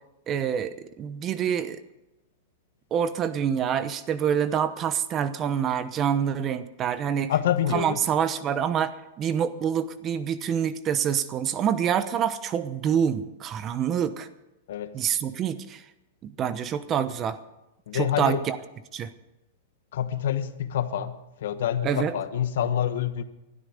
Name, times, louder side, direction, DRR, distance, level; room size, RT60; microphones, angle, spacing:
voice 1, 0.3-1.8 2.9-7.3 7.7-14.3 14.9-15.8 16.2-17.4 17.9-18.6 18.9-19.1 21.8-22.1, right 8 dB, 25° right, 13 dB, 0.9 m, -26 dB
voice 2, 7.3-8.0 14.7-14.9 17.9-18.4 19.9-23.2, left 10 dB, 70° left, 11 dB, 1.3 m, -27 dB
20.5 x 12.5 x 5.2 m, 0.95 s
supercardioid pair, 150°, 0 cm